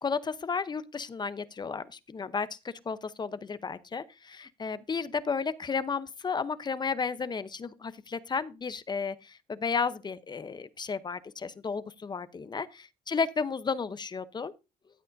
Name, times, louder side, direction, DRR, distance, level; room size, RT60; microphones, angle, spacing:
voice 1, 0.0-14.5, left 5 dB, 25° left, 0.8 m, -33 dB
13.5 x 8.2 x 2.6 m
cardioid pair, 110°, 17 cm